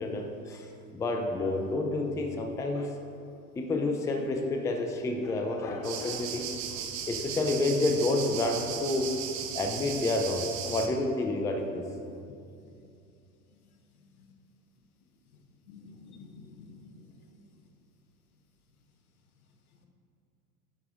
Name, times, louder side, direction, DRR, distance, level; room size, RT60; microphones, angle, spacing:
voice 1, 0.0-3.0 3.6-9.2 9.5-11.8, left 2 dB, 5° left, 3 dB, 0.4 m, -29 dB
sound 1, 5.8-10.9, right 8 dB, 40° right, 0.8 m, -37 dB
voice 2, 15.7-16.9, left 4 dB, 75° left, 5 dB, 1.0 m, -50 dB
10.0 x 5.0 x 3.7 m, 2.5 s
figure-of-eight pair, 80°, 44 cm